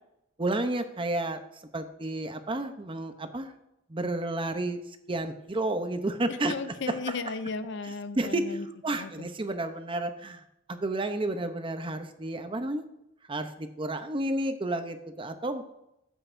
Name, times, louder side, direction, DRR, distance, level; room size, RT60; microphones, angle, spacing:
voice 1, 0.4-1.4 1.7-3.5 3.9-4.8 5.1-6.5 6.9-7.2 8.2-8.5 8.8-10.4 10.7-12.8 13.3-15.7, right 2 dB, 25° right, 8 dB, 0.7 m, -31 dB
voice 2, 6.3-8.7 8.9-9.3, left 4 dB, 65° left, 12 dB, 0.6 m, -35 dB
13.5 x 8.2 x 2.6 m, 0.84 s
head